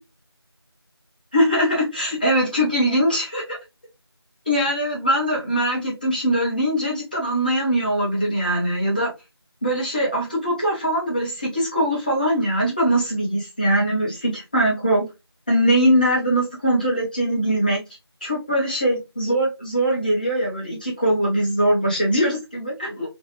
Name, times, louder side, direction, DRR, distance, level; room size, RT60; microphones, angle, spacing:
voice 1, 1.3-3.6 4.4-9.1 9.6-15.1 15.5-17.8 18.2-23.1, equal, 20° left, -4 dB, 1.0 m, -21 dB
3.1 x 3.1 x 3.0 m, 0.24 s
figure-of-eight pair, 175°, 14 cm